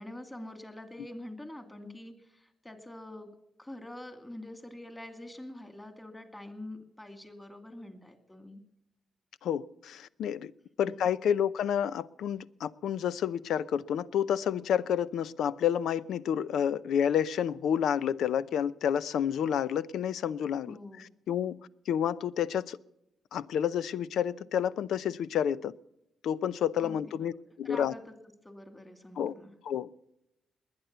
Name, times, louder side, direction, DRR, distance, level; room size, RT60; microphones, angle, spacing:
voice 1, 0.0-3.3 3.6-8.6 10.8-11.1 20.6-21.1 26.8-27.0 27.6-28.1 28.4-29.5, left 1 dB, 10° left, 8 dB, 2.4 m, -45 dB
voice 2, 9.4-10.5 10.8-22.8 23.3-25.7 26.2-27.3 27.6-27.9 29.2-29.3 29.6-29.9, left 9 dB, 85° left, 17 dB, 0.6 m, -29 dB
20.5 x 9.7 x 6.8 m, 0.85 s
cardioid pair, 125°, 0 cm